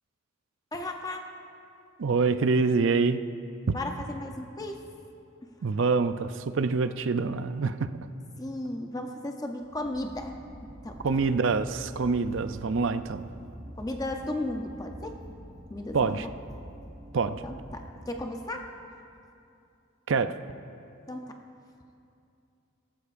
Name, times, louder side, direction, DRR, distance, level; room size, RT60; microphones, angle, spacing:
voice 1, 0.7-1.3 3.7-4.8 8.4-10.3 10.8-11.0 13.8-15.2 15.7-16.3 17.4-18.7 21.1-21.4, left 1 dB, 20° left, 3 dB, 0.6 m, -35 dB
voice 2, 2.0-3.2 3.7-3.8 5.6-7.9 11.0-13.3 15.9-16.3 17.1-17.4 20.1-20.4, right 4 dB, 65° right, 11 dB, 0.5 m, -26 dB
sound 1, 9.6-18.7, equal, 15° right, 0.8 m, -46 dB
17.5 x 15.0 x 2.5 m, 2.6 s
head